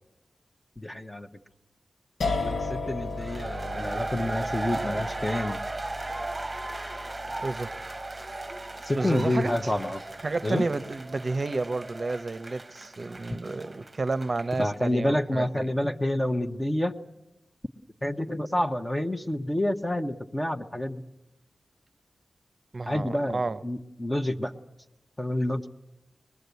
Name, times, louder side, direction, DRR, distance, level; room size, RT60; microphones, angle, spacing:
voice 1, 0.8-1.3 2.4-5.6 8.8-10.0 10.4-10.6 13.3-13.4 14.6-17.0 18.0-21.0 22.8-24.5 25.2-25.6, left 1 dB, 20° left, 0.9 m, -28 dB
sound 1, 2.2-9.1, left 3 dB, 85° left, 1.6 m, -36 dB
sound 2, 3.1-14.8, right 2 dB, 25° right, 1.0 m, -36 dB
voice 2, 7.4-7.7 8.2-8.4 8.9-9.7 10.2-15.7 22.7-23.6, right 3 dB, 45° right, 0.7 m, -31 dB
23.5 x 20.5 x 8.2 m
wide cardioid pair, 95°, 0 cm